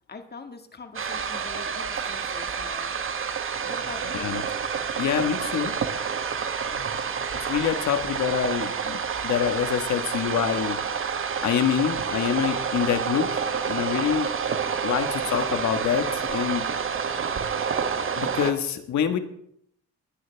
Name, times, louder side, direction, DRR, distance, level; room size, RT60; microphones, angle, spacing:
voice 1, 0.1-2.9 3.6-4.4, left 4 dB, 35° left, 6 dB, 1.8 m, -43 dB
sound 1, 0.9-18.5, right 6 dB, 45° right, 1.2 m, -29 dB
voice 2, 5.0-5.7 6.7-6.9 7.3-9.0 9.2-10.8 11.4-14.3 14.8-16.6 18.2-19.2, left 8 dB, 70° left, 8 dB, 1.5 m, -26 dB
21.0 x 9.7 x 3.4 m, 0.71 s
cardioid pair, 90°, 30 cm